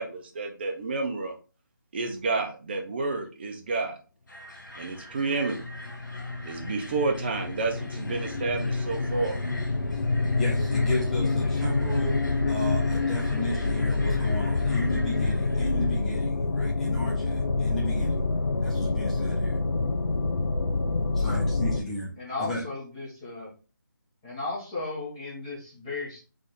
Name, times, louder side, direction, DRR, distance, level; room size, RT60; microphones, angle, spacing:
voice 1, 0.0-1.3 1.9-4.0 4.8-5.6 6.4-9.4, right 3 dB, 30° right, 3 dB, 0.8 m, -30 dB
sound 1, 4.3-16.0, left 1 dB, 60° left, 1.7 m, -46 dB
sound 2, 5.2-21.8, left 3 dB, 80° left, 0.8 m, -27 dB
voice 2, 10.4-12.2 12.5-18.2 18.6-19.6 21.1-22.1 22.4-22.6, left 1 dB, ahead, -5 dB, 0.4 m, -34 dB
voice 3, 22.2-23.5 24.2-26.2, left 3 dB, 20° left, -7 dB, 1.4 m, -35 dB
4.0 x 3.4 x 3.8 m, 0.34 s
figure-of-eight pair, 165°, 11 cm